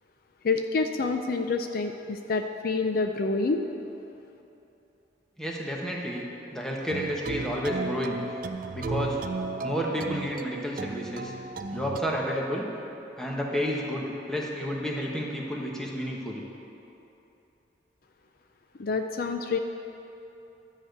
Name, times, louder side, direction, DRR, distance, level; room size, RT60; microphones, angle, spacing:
voice 1, 0.4-3.6 18.8-19.6, left 3 dB, 55° left, 6 dB, 0.4 m, -27 dB
voice 2, 5.4-6.2 6.5-8.2 8.7-9.2 9.6-11.3 11.7-12.7 13.2-16.4, equal, 5° left, -2 dB, 1.2 m, -31 dB
sound 1, 6.9-12.0, right 3 dB, 50° right, 0.4 m, -35 dB
12.5 x 5.0 x 7.9 m, 3.0 s
head